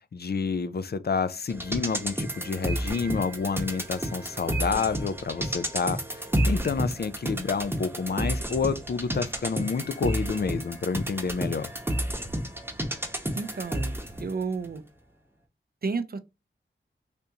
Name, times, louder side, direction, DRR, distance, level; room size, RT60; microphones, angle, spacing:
voice 1, 0.1-11.7, left 5 dB, 50° left, 0.4 m, -29 dB
sound 1, 1.5-14.3 14.6-14.7, equal, 10° right, 0.9 m, -31 dB
voice 2, 13.4-14.0 14.2-14.8 15.8-16.2, right 4 dB, 45° right, 0.5 m, -31 dB
3.5 x 2.6 x 2.8 m
cardioid pair, 45°, 21 cm